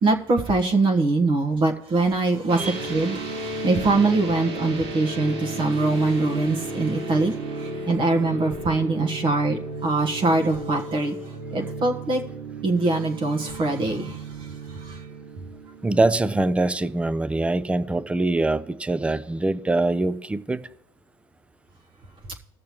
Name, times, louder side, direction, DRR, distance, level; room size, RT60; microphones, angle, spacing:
voice 1, 0.0-11.2 11.5-12.2 12.6-14.5 14.8-15.0, right 3 dB, 40° right, 1.2 m, -23 dB
sound 1, 2.5-16.7, right 2 dB, 90° right, 2.5 m, -34 dB
voice 2, 15.8-20.6, right 2 dB, 10° right, 0.5 m, -23 dB
19.0 x 6.6 x 3.0 m
supercardioid pair, 90°, 13 cm